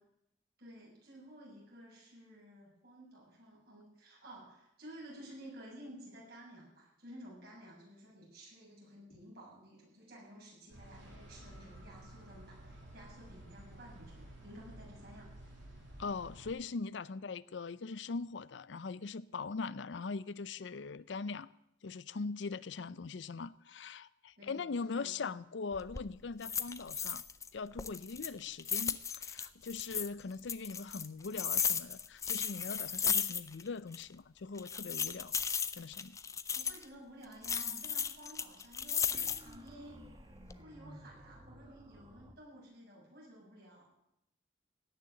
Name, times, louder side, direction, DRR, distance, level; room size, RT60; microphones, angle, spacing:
voice 1, 0.6-15.3 24.4-25.1 36.5-40.0 40.5-43.8, right 1 dB, 55° right, 7.8 m, -53 dB
sound 1, 10.7-16.5, right 1 dB, 85° right, 6.4 m, -53 dB
voice 2, 16.0-21.5 21.8-27.2 27.5-35.3 35.8-36.2, left 4 dB, 75° left, 0.5 m, -41 dB
sound 2, 25.7-26.1 26.4-27.5 27.8-30.1 30.5-33.7 33.9-34.0 34.6-36.8 37.4-39.6 40.1-40.6, left 7 dB, 15° left, 0.4 m, -35 dB
sound 3, 39.1-42.3, right 1 dB, 25° right, 1.2 m, -54 dB
17.0 x 6.7 x 9.9 m
head